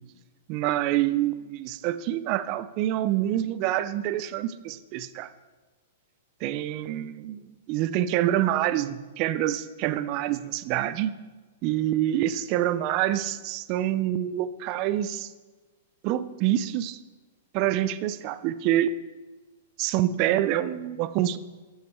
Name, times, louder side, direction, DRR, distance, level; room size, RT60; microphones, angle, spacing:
voice 1, 0.5-5.3 6.4-11.1 11.6-15.3 16.0-17.0 17.5-18.9 19.8-21.4, right 12 dB, 35° right, 14 dB, 0.4 m, -26 dB
8.5 x 7.3 x 4.6 m, 1.2 s
hypercardioid pair, 155°, 0 cm